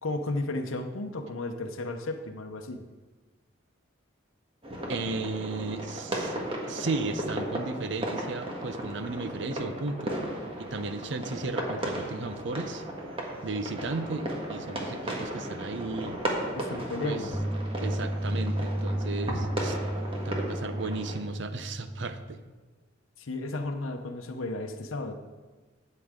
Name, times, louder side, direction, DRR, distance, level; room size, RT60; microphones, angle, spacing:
voice 1, 0.0-2.8 16.6-17.3 23.2-25.1, left 2 dB, 80° left, 4 dB, 0.8 m, -33 dB
sound 1, 4.6-21.2, right 1 dB, 25° right, 1.6 m, -35 dB
voice 2, 4.9-6.4 6.7-10.1 10.6-12.8 13.4-16.2 17.0-17.2 17.8-19.8 20.2-22.4, right 3 dB, 60° right, 10 dB, 0.7 m, -35 dB
sound 2, 17.3-22.3, right 1 dB, 5° right, 0.4 m, -32 dB
13.0 x 8.5 x 3.7 m, 1.3 s
head